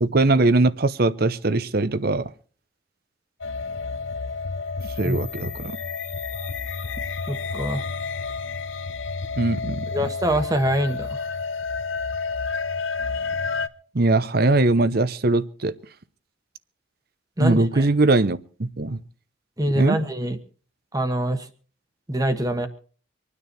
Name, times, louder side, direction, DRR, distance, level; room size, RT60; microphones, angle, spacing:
voice 1, 0.0-2.3 4.8-5.8 9.4-9.9 13.9-15.7 17.4-19.0 19.7-20.0, right 2 dB, 50° right, 0.8 m, -21 dB
sound 1, 3.4-13.7, left 4 dB, 75° left, 0.9 m, -30 dB
voice 2, 7.3-7.8 9.9-11.2 17.4-17.9 19.6-20.4 20.9-21.5 22.1-22.7, right 1 dB, 20° right, 1.4 m, -24 dB
25.5 x 9.8 x 4.5 m
head